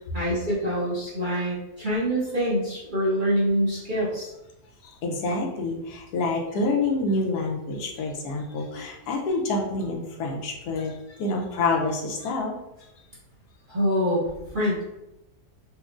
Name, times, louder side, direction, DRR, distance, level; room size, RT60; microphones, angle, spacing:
voice 1, 0.1-4.3 13.7-14.3 14.5-14.8, equal, 35° right, -8 dB, 0.9 m, -25 dB
voice 2, 4.8-12.6, left 3 dB, 75° left, 0 dB, 1.1 m, -27 dB
4.4 x 2.4 x 2.4 m, 0.93 s
omnidirectional pair, 1.7 m